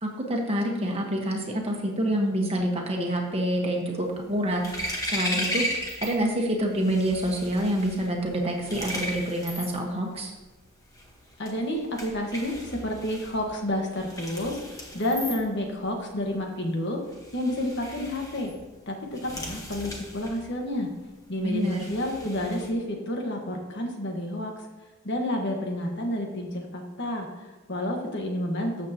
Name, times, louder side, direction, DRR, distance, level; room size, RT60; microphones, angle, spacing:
voice 1, 0.0-10.3 21.4-21.9, right 1 dB, 25° right, 1 dB, 1.4 m, -27 dB
sound 1, 4.1-6.2 6.5-22.7, equal, 15° left, 1.4 m, -36 dB
voice 2, 11.4-14.6 14.9-17.0 17.3-18.5 18.9-20.9 21.3-24.5 25.0-28.9, left 1 dB, 50° left, 2 dB, 1.6 m, -30 dB
13.0 x 7.4 x 3.0 m, 1.2 s
head